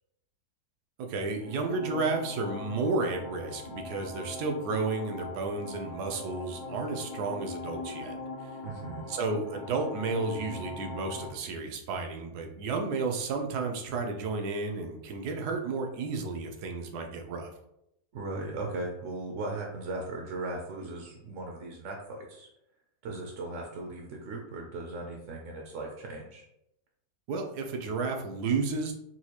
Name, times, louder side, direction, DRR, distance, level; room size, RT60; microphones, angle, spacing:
voice 1, 1.0-8.2 8.4-8.6 9.1-17.5 27.3-28.9, right 3 dB, 85° right, 3 dB, 1.2 m, -32 dB
sound 1, 1.3-11.3, left 3 dB, 90° left, 1.6 m, -41 dB
voice 2, 8.6-9.1 18.1-22.5 23.0-26.4, right 2 dB, 65° right, 1 dB, 0.8 m, -38 dB
4.3 x 2.3 x 2.9 m, 0.82 s
omnidirectional pair, 1.6 m